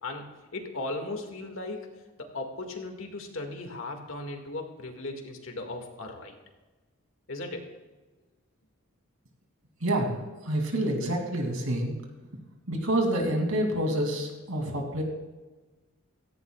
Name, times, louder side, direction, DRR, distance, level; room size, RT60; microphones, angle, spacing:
voice 1, 0.0-1.9 2.2-6.4 7.3-7.7, left 2 dB, 65° left, 3 dB, 2.0 m, -37 dB
voice 2, 9.8-10.2 10.4-11.9 12.7-15.0, right 1 dB, 75° right, 1 dB, 2.8 m, -27 dB
17.0 x 15.0 x 2.4 m, 1.2 s
head